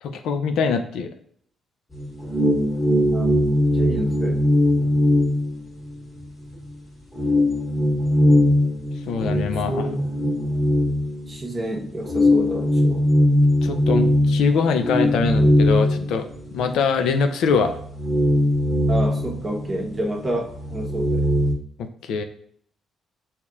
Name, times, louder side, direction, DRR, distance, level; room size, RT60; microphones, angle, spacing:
voice 1, 0.0-1.1 9.1-9.9 13.6-16.3 16.5-17.7 22.0-22.2, left 5 dB, 80° left, 7 dB, 0.4 m, -23 dB
sound 1, 1.9-6.2 6.6-6.7 7.1-11.6 12.0-16.7 17.1-17.2 17.6-20.1 20.3-21.5, left 1 dB, 30° left, 1.6 m, -20 dB
voice 2, 3.0-3.4 3.7-4.4 9.7-10.4 11.3-13.1 18.9-21.3, right 1 dB, 25° right, 0 dB, 1.0 m, -28 dB
6.4 x 2.8 x 2.3 m, 0.63 s
cardioid pair, 90°, 0 cm